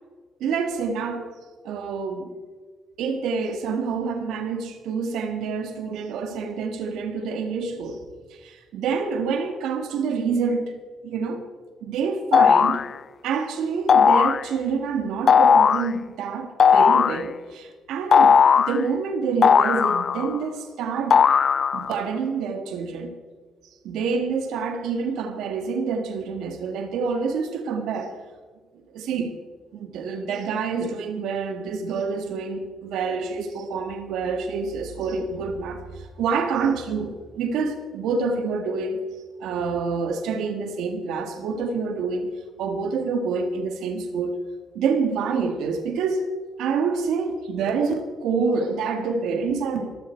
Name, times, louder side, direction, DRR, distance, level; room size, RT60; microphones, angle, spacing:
voice 1, 0.4-1.3 1.6-2.3 3.0-8.0 8.3-10.8 11.0-11.4 11.8-12.8 13.2-21.3 21.7-23.1 23.8-28.2 28.9-29.3 29.7-39.0 39.4-42.3 42.6-44.3 44.8-46.2 46.6-49.9, right 5 dB, 85° right, 1.9 m, -27 dB
sound 1, 12.3-12.9 13.9-14.4 15.3-15.9 16.6-17.2 18.1-18.8 19.4-20.4 21.1-21.9, left 6 dB, 50° left, 0.5 m, -16 dB
25.0 x 12.5 x 4.6 m
cardioid pair, 90°, 0 cm